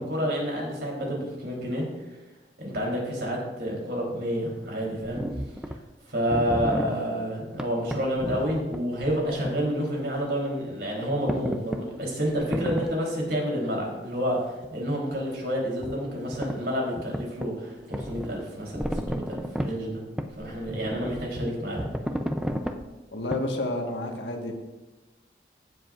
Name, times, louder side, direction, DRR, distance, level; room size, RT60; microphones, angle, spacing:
voice 1, 0.0-1.9 2.6-5.2 6.1-20.0 20.4-21.8, equal, 70° right, -2 dB, 3.5 m, -29 dB
sound 1, 4.1-4.2 5.0-5.8 6.2-7.0 7.6-9.6 9.9-10.0 11.3-11.8 12.4-13.0 14.6-14.7 15.8-16.0 16.3-16.6 17.0-17.5 17.8-19.7 20.2-22.8 23.3-23.4, equal, 5° right, 0.5 m, -32 dB
voice 2, 23.1-24.5, left 1 dB, 90° left, 2 dB, 1.5 m, -30 dB
16.0 x 7.6 x 2.5 m, 1.1 s
head